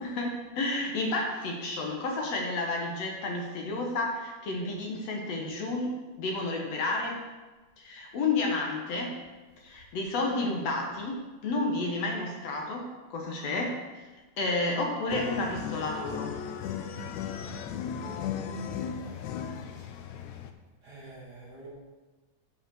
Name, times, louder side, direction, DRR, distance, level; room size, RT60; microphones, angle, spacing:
voice 1, 0.0-7.2 7.8-9.1 9.6-13.8 14.4-16.3, left 2 dB, 65° left, 1 dB, 2.3 m, -31 dB
sound 1, 15.1-20.5, left 7 dB, 90° left, 2.1 m, -36 dB
voice 2, 18.9-19.2 19.7-19.9 20.8-21.7, right 2 dB, 40° right, -5 dB, 2.1 m, -49 dB
10.0 x 5.7 x 6.1 m, 1.2 s
omnidirectional pair, 3.3 m